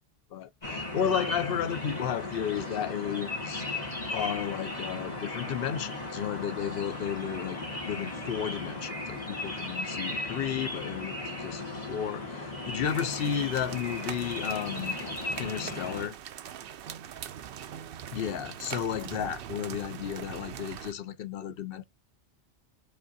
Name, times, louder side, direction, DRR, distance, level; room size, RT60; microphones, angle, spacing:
voice 1, 0.3-3.7 4.1-15.0 15.4-16.2 18.1-21.8, left 9 dB, 70° left, 0.8 m, -33 dB
sound 1, 0.6-16.1, left 2 dB, 40° left, 1.7 m, -36 dB
sound 2, 12.8-20.9, right 9 dB, 70° right, 0.7 m, -42 dB
5.1 x 3.5 x 2.7 m
omnidirectional pair, 1.0 m